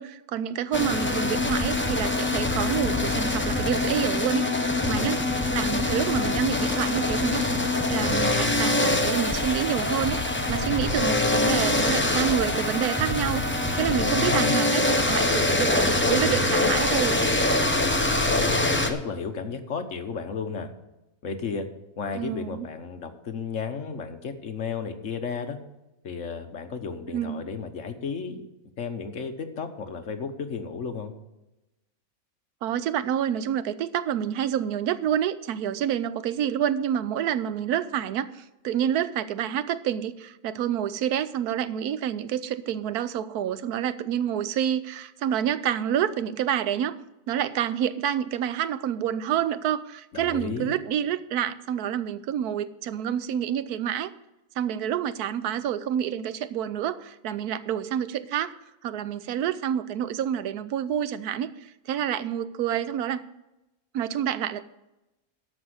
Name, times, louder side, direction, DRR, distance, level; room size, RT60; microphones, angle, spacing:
voice 1, 0.0-4.5 4.9-5.2 5.5-7.6 7.9-17.2 22.1-22.7 27.1-27.4 32.6-47.0 47.3-54.1 54.6-58.5 58.8-63.2 63.9-64.6, right 9 dB, 85° right, 14 dB, 1.2 m, -28 dB
sound 1, 0.7-18.9, left 2 dB, 10° left, 0.6 m, -24 dB
voice 2, 4.8-5.3 13.9-14.6 17.7-18.0 18.4-20.7 21.2-21.7 22.0-25.6 26.0-28.5 28.8-31.1 50.1-50.7, left 5 dB, 55° left, 7 dB, 1.4 m, -33 dB
12.5 x 5.5 x 7.8 m, 0.98 s
omnidirectional pair, 1.6 m